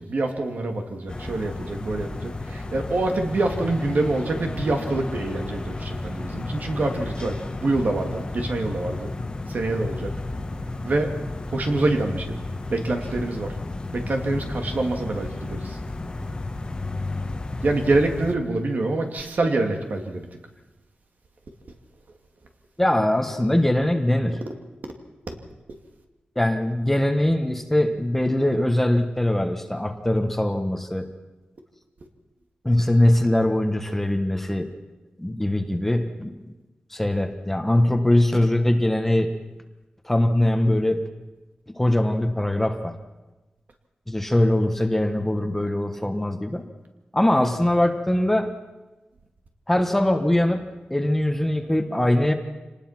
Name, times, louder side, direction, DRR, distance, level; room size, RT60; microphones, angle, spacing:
voice 1, 0.0-9.1 9.5-10.1 10.8-11.1 11.5-12.4 12.7-13.5 13.9-15.8 17.6-20.3 25.3-25.4, right 2 dB, 55° right, 4 dB, 2.6 m, -26 dB
sound 1, 1.1-18.4, left 2 dB, 25° left, 1.4 m, -33 dB
voice 2, 22.8-24.4 26.3-31.1 32.6-34.7 35.2-36.3 36.9-39.3 40.0-41.0 41.7-43.0 44.1-46.6 47.1-48.5 49.7-50.6 50.9-52.3, left 1 dB, 10° left, 6 dB, 1.4 m, -22 dB
26.0 x 19.5 x 6.0 m, 1.1 s
wide cardioid pair, 160°, 3 cm